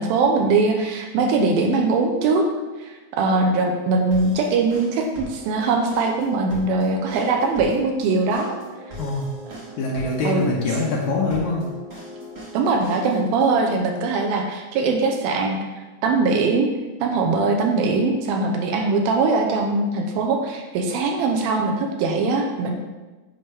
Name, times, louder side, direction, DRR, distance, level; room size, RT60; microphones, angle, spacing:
voice 1, 0.0-2.5 2.8-8.6 9.5-9.6 10.2-10.4 12.5-15.6 16.0-16.7 17.0-22.8, right 3 dB, 85° right, 2 dB, 2.5 m, -21 dB
sound 1, 4.1-13.7, equal, 60° right, 0.7 m, -39 dB
voice 2, 9.0-9.4 9.8-11.7, left 3 dB, 75° left, -2 dB, 1.7 m, -24 dB
7.8 x 5.5 x 3.4 m, 1.2 s
omnidirectional pair, 4.3 m